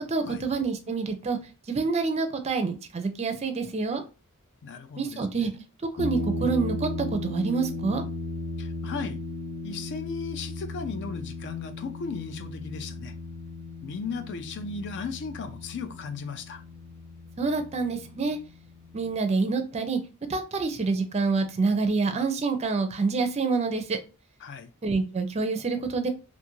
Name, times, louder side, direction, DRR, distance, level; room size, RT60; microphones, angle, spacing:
voice 1, 0.1-1.4 1.7-4.0 5.0-5.5 6.0-8.0 17.4-18.4 18.9-20.0 20.3-24.0 24.8-26.1, right 4 dB, 30° right, 0.4 m, -27 dB
voice 2, 4.6-5.4 8.6-9.2 9.6-13.1 13.8-16.6 24.4-24.7, left 5 dB, 55° left, 0.4 m, -36 dB
sound 1, 6.0-19.1, left 2 dB, 85° left, 0.7 m, -36 dB
2.5 x 2.4 x 3.0 m
head